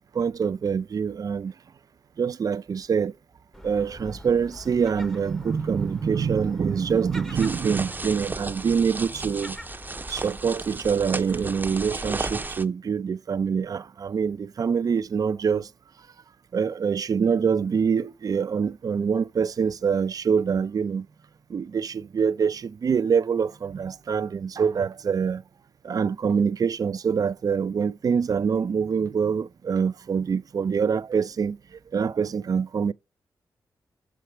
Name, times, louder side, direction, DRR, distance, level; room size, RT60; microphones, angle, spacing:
voice 1, 0.0-1.5 2.2-3.1 3.6-9.6 10.1-15.7 16.5-21.1 21.5-25.4 25.8-32.9, right 6 dB, 55° right, 0.5 m, -25 dB
Gull seagull, 3.5-12.5, equal, 5° left, 0.9 m, -43 dB
sound 1, 7.3-12.6, right 3 dB, 25° right, 0.7 m, -34 dB
6.8 x 4.5 x 6.0 m
cardioid pair, 75°, 8 cm